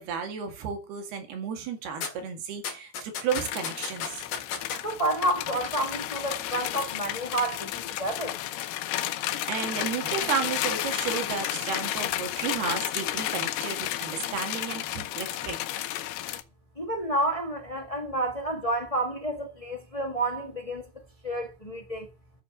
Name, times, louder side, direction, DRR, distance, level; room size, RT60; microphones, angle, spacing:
voice 1, 0.0-4.3 9.5-15.6, right 7 dB, 90° right, 4.0 m, -33 dB
sound 1, 2.0-2.1 2.6-4.8 5.4-5.7 6.0-6.1, left 6 dB, 60° left, 3.6 m, -33 dB
sound 2, 3.3-16.4, left 13 dB, 85° left, 2.8 m, -32 dB
voice 2, 4.8-8.3 16.8-20.8 21.2-22.1, right 1 dB, 45° left, 0.4 m, -30 dB
11.5 x 6.9 x 7.2 m
omnidirectional pair, 4.4 m